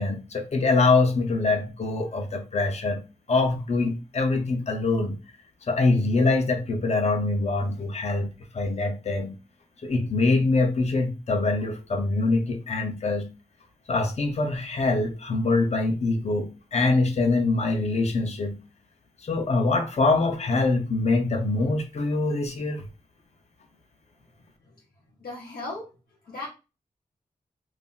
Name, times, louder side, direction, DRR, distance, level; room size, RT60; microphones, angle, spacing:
voice 1, 0.0-3.0 3.3-5.2 5.7-9.3 9.8-13.3 13.9-18.6 19.2-22.9, left 3 dB, 45° left, 0.6 m, -24 dB
voice 2, 25.2-25.9 26.2-26.5, left 2 dB, 85° left, 0.7 m, -36 dB
2.5 x 2.1 x 3.8 m
cardioid pair, 60°, 15 cm